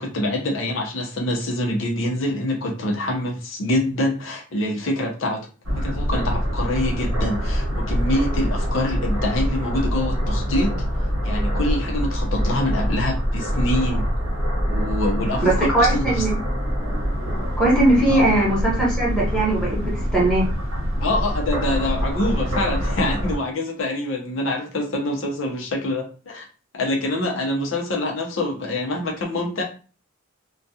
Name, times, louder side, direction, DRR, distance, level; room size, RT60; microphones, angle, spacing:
voice 1, 0.0-5.5 5.8-10.8 11.2-14.2 14.7-16.2 18.1-18.2 21.0-26.5 26.7-29.6, left 1 dB, 70° left, 2 dB, 0.7 m, -25 dB
sound 1, 5.6-23.3, equal, 80° right, 0.9 m, -24 dB
voice 2, 15.4-16.3 17.6-20.4, right 1 dB, 5° left, -6 dB, 1.0 m, -19 dB
2.3 x 2.3 x 2.7 m, 0.35 s
head